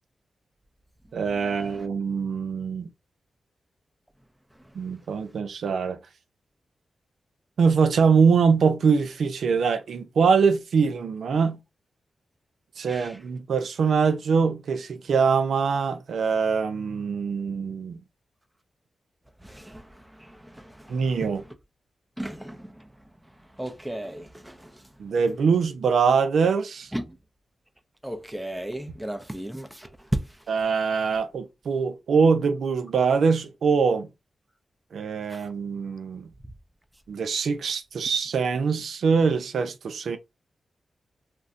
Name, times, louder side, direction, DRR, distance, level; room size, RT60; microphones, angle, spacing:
voice 1, 1.1-2.9 4.7-6.0 7.6-11.6 12.8-18.0 20.9-21.4 25.0-26.9 30.5-34.1 34.9-36.3 37.1-40.2, right 5 dB, 85° right, 0.4 m, -23 dB
voice 2, 22.2-22.7 23.6-24.5 26.9-27.0 28.0-29.7, right 1 dB, 5° right, 0.5 m, -34 dB
2.5 x 2.1 x 3.6 m
cardioid pair, 80°, 0 cm